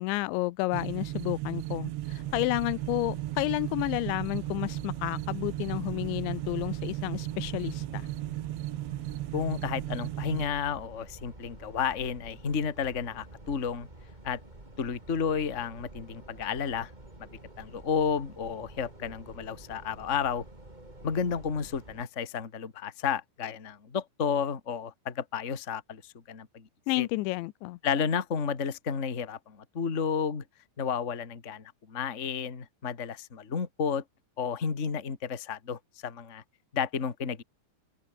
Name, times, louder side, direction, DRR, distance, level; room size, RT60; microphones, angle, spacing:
voice 1, 0.0-8.1 26.9-27.8, left 20 dB, 90° left, 3.1 m, -31 dB
sound 1, 0.7-10.5, right 16 dB, 85° right, 3.3 m, -35 dB
sound 2, 2.0-22.0, right 1 dB, 10° right, 3.5 m, -49 dB
voice 2, 9.3-13.9 14.2-14.4 14.8-16.9 17.6-20.4 21.0-26.7 27.0-27.1 27.8-30.4 30.8-34.0 34.4-36.4 36.7-37.4, left 6 dB, 30° left, 1.3 m, -32 dB
open air
omnidirectional pair, 5.1 m